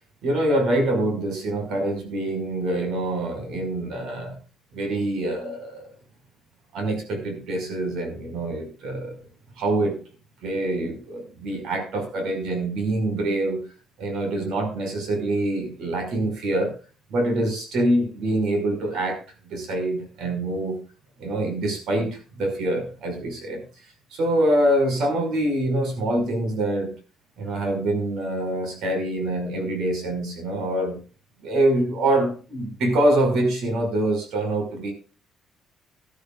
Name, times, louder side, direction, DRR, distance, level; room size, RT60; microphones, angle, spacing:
voice 1, 0.2-4.4 4.7-5.9 6.7-9.2 9.6-10.0 10.4-13.6 14.0-16.7 17.1-19.2 19.5-20.8 21.2-23.6 24.1-27.0 27.4-31.0 31.4-34.9, right 1 dB, 70° right, 6 dB, 5.7 m, -25 dB
18.0 x 12.0 x 2.5 m, 0.35 s
cardioid pair, 125°, 0 cm